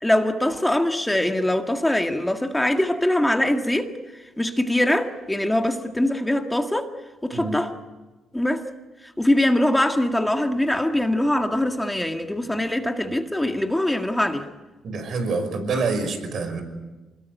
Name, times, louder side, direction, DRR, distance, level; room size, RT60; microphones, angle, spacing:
voice 1, 0.0-6.9 7.2-7.8 8.3-8.6 9.0-14.5, left 1 dB, 10° left, 5 dB, 1.9 m, -23 dB
voice 2, 14.8-16.6, right 4 dB, 60° right, 8 dB, 5.6 m, -26 dB
26.0 x 21.0 x 9.3 m, 1.2 s
cardioid pair, 90°, 0 cm